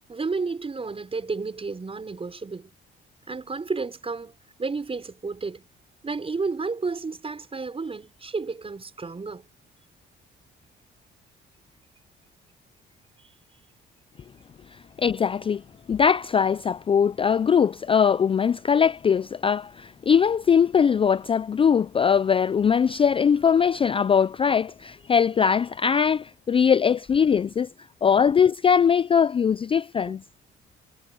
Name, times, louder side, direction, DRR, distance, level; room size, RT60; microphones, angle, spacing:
voice 1, 0.1-2.7 3.3-4.3 4.6-5.6 6.0-9.5 30.1-30.2, right 4 dB, 30° right, 5.6 m, -31 dB
voice 2, 15.0-15.6 15.9-27.7 28.0-30.2, left 7 dB, 25° left, 0.3 m, -21 dB
cardioid pair, 90°, 20 cm